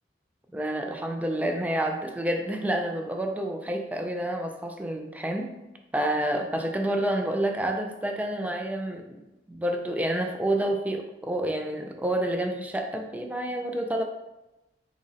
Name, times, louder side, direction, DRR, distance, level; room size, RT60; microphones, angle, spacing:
voice 1, 0.5-5.5 5.9-9.2 9.5-14.0, right 1 dB, 10° right, 3 dB, 0.3 m, -29 dB
3.0 x 2.5 x 3.9 m, 0.99 s
head